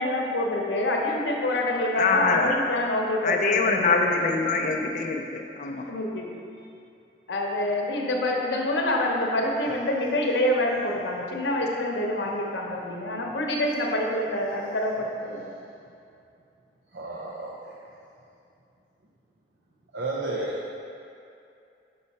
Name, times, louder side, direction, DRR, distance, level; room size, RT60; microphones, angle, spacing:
voice 1, 0.0-4.4 5.9-6.4 7.3-15.5, left 1 dB, 80° left, 0 dB, 0.8 m, -27 dB
voice 2, 2.0-2.5 3.2-5.8, left 4 dB, 45° left, 1 dB, 0.4 m, -24 dB
voice 3, 16.9-17.8 19.9-20.7, right 2 dB, 75° right, -4 dB, 0.6 m, -32 dB
5.5 x 5.4 x 4.1 m, 2.6 s
head